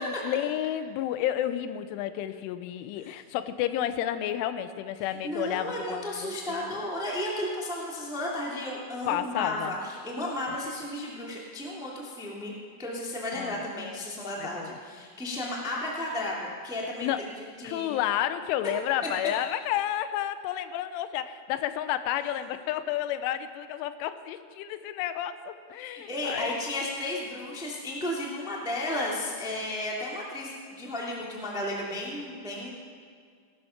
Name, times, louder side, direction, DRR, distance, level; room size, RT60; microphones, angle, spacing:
voice 1, 0.0-6.8 9.1-9.7 13.4-13.6 14.4-14.8 17.0-17.2 17.6-26.6, left 11 dB, 85° left, 11 dB, 3.2 m, -31 dB
voice 2, 5.0-12.5 12.8-17.1 17.6-17.9 25.8-32.7, left 1 dB, ahead, -4 dB, 1.1 m, -33 dB
18.5 x 12.5 x 5.9 m, 2.1 s
omnidirectional pair, 5.5 m